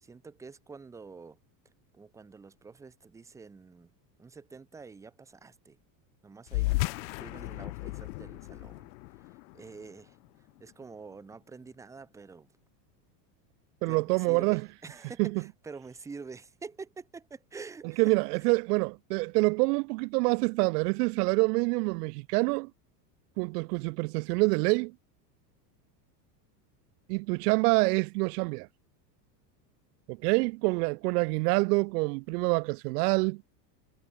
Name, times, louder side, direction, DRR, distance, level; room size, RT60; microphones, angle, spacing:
voice 1, 0.0-1.4 1.9-3.9 4.2-5.8 6.2-6.7 7.0-8.9 9.5-10.2 10.6-12.5 13.9-18.2, right 4 dB, 5° right, 0.4 m, -47 dB
sound 1, 6.5-11.4, left 23 dB, 75° left, 1.3 m, -35 dB
voice 2, 13.8-14.6 15.2-15.4 17.8-22.7 23.4-24.9 27.1-28.7 30.1-33.4, right 27 dB, 65° right, 0.7 m, -26 dB
supercardioid pair, 130°, 50 cm